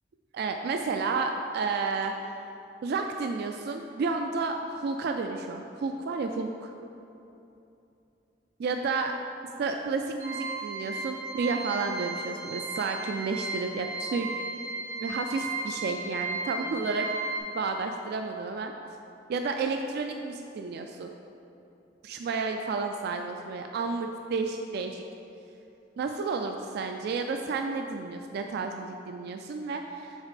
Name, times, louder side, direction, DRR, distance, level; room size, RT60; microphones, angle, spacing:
voice 1, 0.3-2.1 2.8-6.7 8.6-9.1 9.6-14.3 15.0-17.1 17.4-18.7 19.3-21.1 22.0-25.0 26.0-30.3, right 4 dB, 60° right, 4 dB, 0.3 m, -31 dB
sound 1, 10.2-17.4, right 3 dB, 75° right, 1.3 m, -35 dB
6.4 x 4.0 x 4.9 m, 2.8 s
head